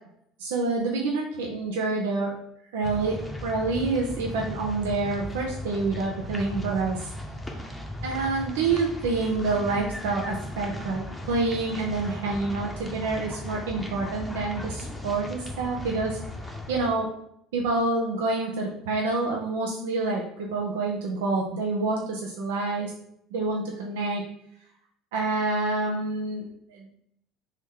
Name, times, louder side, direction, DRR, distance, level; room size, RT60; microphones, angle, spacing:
voice 1, 0.4-2.3 2.7-3.2 3.4-7.1 8.0-11.0 11.3-16.2 16.7-17.1 17.5-22.9 23.3-24.2 25.1-26.8, right 3 dB, 75° right, -1 dB, 0.5 m, -27 dB
sound 1, 2.8-16.9, left 1 dB, 10° left, 0.8 m, -37 dB
3.4 x 3.0 x 3.6 m, 0.71 s
hypercardioid pair, 65°, 0 cm